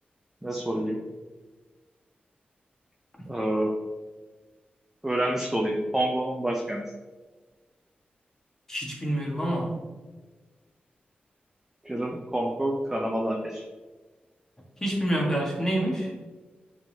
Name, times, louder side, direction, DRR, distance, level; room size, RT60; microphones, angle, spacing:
voice 1, 0.4-1.0 3.3-3.7 5.0-6.8 11.8-13.6, right 1 dB, 10° right, 0 dB, 0.7 m, -28 dB
voice 2, 8.7-9.7 14.8-16.1, right 1 dB, 15° left, -2 dB, 1.5 m, -27 dB
9.4 x 3.6 x 2.8 m, 1.3 s
wide cardioid pair, 115°, 4 cm